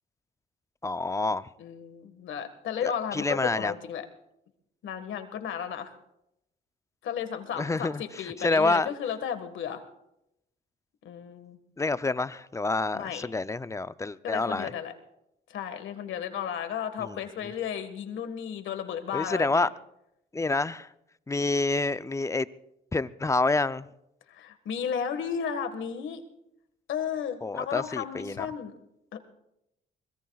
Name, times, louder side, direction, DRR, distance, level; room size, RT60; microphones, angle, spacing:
voice 1, 0.8-1.5 3.1-3.7 7.6-8.0 8.4-8.9 11.8-14.7 17.0-17.2 19.1-19.7 20.3-20.9 21.3-22.5 22.9-23.9 27.4-28.5, left 3 dB, 15° left, 0.5 m, -27 dB
voice 2, 1.6-4.0 4.8-5.9 7.0-9.8 11.0-11.6 12.9-13.2 14.2-14.9 15.5-19.7 24.3-26.2 26.9-28.7 29.1-29.2, left 8 dB, 75° left, 1.7 m, -34 dB
24.5 x 21.0 x 2.4 m
cardioid pair, 90°, 20 cm